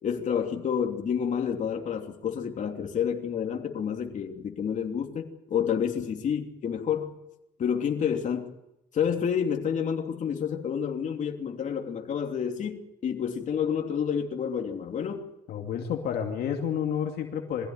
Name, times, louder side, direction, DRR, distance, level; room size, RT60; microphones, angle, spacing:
voice 1, 0.0-7.1 7.6-8.5 8.9-15.3, left 7 dB, 45° left, 3.1 m, -29 dB
voice 2, 15.5-17.7, left 8 dB, 65° left, 2.6 m, -30 dB
24.0 x 16.0 x 9.4 m
cardioid pair, 110°, 17 cm